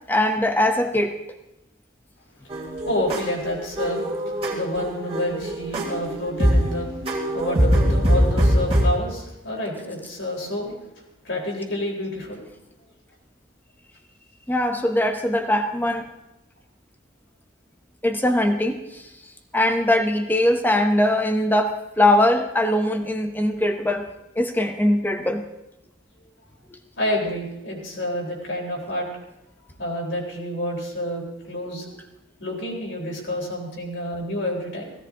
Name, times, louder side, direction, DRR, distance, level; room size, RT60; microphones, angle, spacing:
voice 1, 0.1-1.2 14.5-16.1 18.0-19.1 19.5-24.1 24.4-25.4, left 1 dB, 10° left, 6 dB, 0.9 m, -21 dB
sound 1, 2.5-8.9, equal, 30° right, 2.9 m, -22 dB
voice 2, 2.9-4.0 4.5-6.9 7.3-10.8 11.2-12.4 27.0-29.1 29.8-32.0 32.4-34.9, left 1 dB, 60° left, -2 dB, 4.1 m, -28 dB
16.5 x 16.5 x 3.8 m, 0.93 s
head